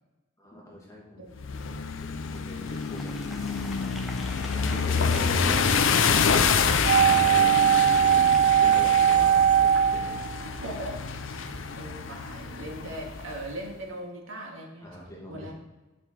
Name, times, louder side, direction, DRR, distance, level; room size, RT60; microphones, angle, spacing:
voice 1, 0.4-1.2 1.6-3.2 4.5-6.4 7.0-7.6 8.4-10.3 14.8-15.5, left 1 dB, 15° left, -4 dB, 2.2 m, -42 dB
voice 2, 1.2-1.8 10.5-11.0 11.3-15.5, right 1 dB, 85° right, 0 dB, 2.1 m, -40 dB
sound 1, 1.4-13.5, left 5 dB, 70° left, 0.6 m, -27 dB
Applause, 2.3-9.9, equal, ahead, 0.9 m, -45 dB
sound 2, 6.9-11.0 11.2-11.3, right 9 dB, 55° right, 0.3 m, -20 dB
9.2 x 6.2 x 4.7 m, 1.2 s
head